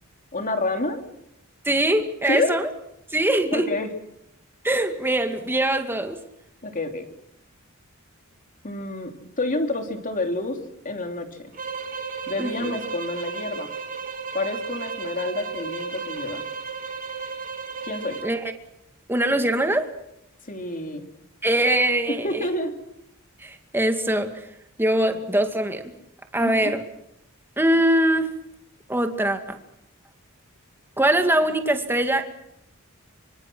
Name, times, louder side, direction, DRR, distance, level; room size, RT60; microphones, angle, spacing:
voice 1, 0.3-1.0 2.3-2.5 3.5-3.9 6.6-7.1 8.6-11.5 12.3-13.7 14.3-16.4 17.8-18.2 20.4-21.1 22.1-22.8 26.4-26.7, left 2 dB, 40° left, 5 dB, 3.1 m, -28 dB
voice 2, 1.6-2.7 3.1-3.6 4.6-6.2 12.4-12.8 18.2-18.4 19.1-19.9 21.4-22.5 23.4-24.4 24.8-25.8 26.3-26.8 27.6-28.3 28.9-29.6 31.0-32.3, right 1 dB, 10° right, 6 dB, 2.2 m, -22 dB
sound 1, 11.5-18.3, right 5 dB, 40° right, 3.3 m, -34 dB
26.5 x 25.0 x 6.2 m, 0.80 s
head